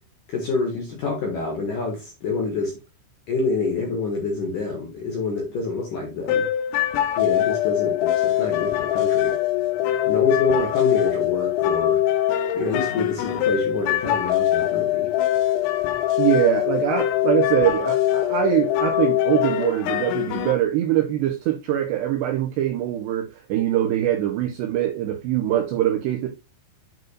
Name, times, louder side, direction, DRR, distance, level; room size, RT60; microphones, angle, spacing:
voice 1, 0.3-2.7 3.3-6.4 7.2-9.4 10.0-12.0 12.5-15.1, left 3 dB, 60° left, -1 dB, 2.2 m, -27 dB
sound 1, 6.3-20.5, left 12 dB, 90° left, 3.3 m, -23 dB
voice 2, 16.2-26.3, right 12 dB, 85° right, 3 dB, 2.4 m, -23 dB
9.3 x 5.2 x 2.4 m, 0.29 s
omnidirectional pair, 6.0 m